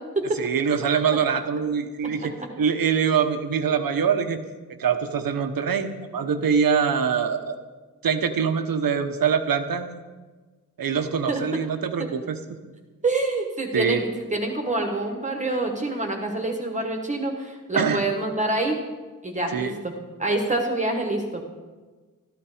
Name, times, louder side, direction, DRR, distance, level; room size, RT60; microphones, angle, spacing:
voice 1, 0.4-4.4 4.8-7.5 8.0-9.9 10.8-12.4 13.7-14.0 17.8-18.0 19.5-19.7, right 6 dB, 85° right, 8 dB, 1.1 m, -24 dB
voice 2, 13.0-18.8 19.2-19.9 20.2-21.4, right 2 dB, 20° right, 2 dB, 1.4 m, -26 dB
13.5 x 12.0 x 5.0 m, 1.3 s
wide cardioid pair, 165°, 34 cm